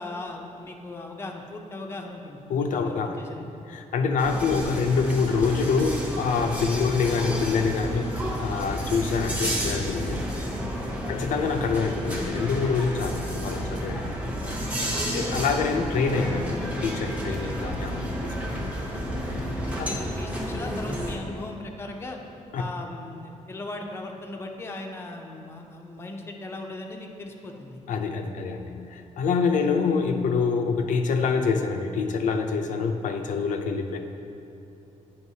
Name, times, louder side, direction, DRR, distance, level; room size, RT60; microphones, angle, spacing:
voice 1, 0.0-2.4 2.7-3.5 11.0-11.2 14.9-15.1 19.2-22.2 22.6-27.8, left 2 dB, 20° left, 2 dB, 0.5 m, -38 dB
voice 2, 2.5-3.2 3.7-10.3 11.1-14.1 15.1-18.7 19.8-19.9 22.5-22.6 27.9-34.0, left 5 dB, 80° left, 4 dB, 0.5 m, -26 dB
sound 1, 4.2-21.2, equal, 10° right, 0.8 m, -31 dB
9.4 x 5.3 x 2.7 m, 2.8 s
wide cardioid pair, 155°, 13 cm